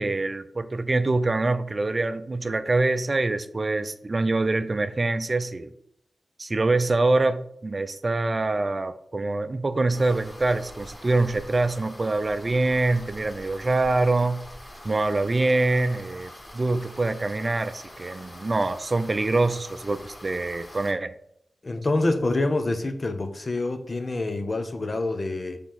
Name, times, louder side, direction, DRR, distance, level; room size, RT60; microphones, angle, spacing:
voice 1, 0.0-5.7 6.4-14.4 14.8-21.1, right 2 dB, 45° right, 0.5 m, -25 dB
sound 1, 9.9-20.9, left 1 dB, 30° left, 2.2 m, -45 dB
voice 2, 21.6-25.6, left 2 dB, 45° left, 1.0 m, -26 dB
7.0 x 3.5 x 5.8 m
cardioid pair, 50°, 0 cm